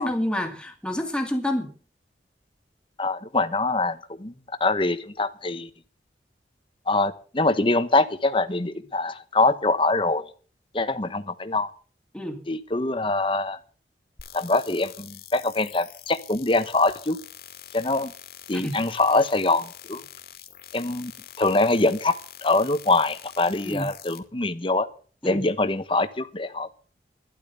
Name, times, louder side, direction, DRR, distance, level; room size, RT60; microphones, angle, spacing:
voice 1, 0.0-1.7 12.1-12.4 18.5-18.8 23.6-23.9 25.2-25.4, left 1 dB, 5° left, 2.3 m, -28 dB
voice 2, 3.0-4.3 4.6-5.7 6.9-10.2 10.7-11.7 12.5-13.6 14.3-17.2 17.7-18.1 18.5-20.0 20.7-21.1 21.4-22.1 22.4-24.9 25.2-26.7, left 2 dB, 30° left, 1.0 m, -24 dB
sound 1, 14.2-24.2, left 10 dB, 60° left, 2.3 m, -45 dB
12.5 x 11.5 x 6.8 m
head